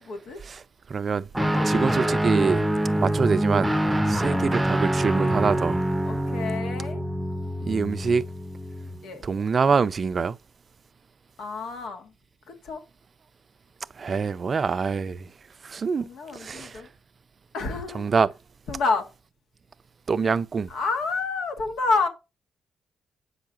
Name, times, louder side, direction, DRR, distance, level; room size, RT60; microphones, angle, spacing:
voice 1, 0.0-0.4 1.4-2.2 4.3-4.5 6.0-7.0 9.0-9.3 11.4-12.1 12.5-12.8 16.0-16.9 17.5-18.0 18.7-19.1 20.7-22.1, left 4 dB, 80° left, 1.5 m, -29 dB
voice 2, 0.9-1.3 1.6-2.6 3.0-3.8 4.0-5.8 7.6-8.3 9.2-10.4 14.0-15.3 15.6-16.8 17.9-18.3 20.1-20.7, right 5 dB, 45° right, 0.4 m, -25 dB
Guitar, 1.3-9.0, right 1 dB, 10° right, 0.7 m, -25 dB
8.0 x 5.7 x 2.5 m
cardioid pair, 65°, 0 cm